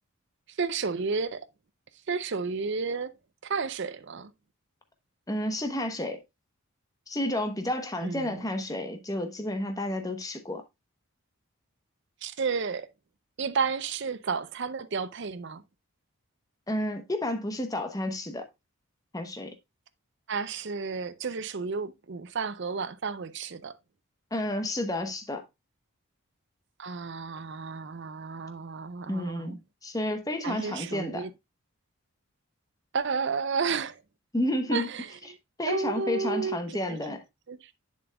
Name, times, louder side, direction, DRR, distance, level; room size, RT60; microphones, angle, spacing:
voice 1, 0.5-1.5 2.1-3.1 3.4-4.3 8.0-8.5 12.2-12.9 13.4-15.6 20.3-23.8 26.8-29.6 30.4-31.3 32.9-34.0 34.7-35.4 35.6-37.0 37.5-37.7, right 5 dB, 55° right, 0.5 m, -32 dB
voice 2, 5.3-6.2 7.1-10.6 16.7-18.4 19.1-19.5 24.3-25.4 29.1-31.2 34.3-34.9 35.6-37.2, left 1 dB, 15° left, 0.9 m, -31 dB
7.9 x 7.2 x 2.3 m
head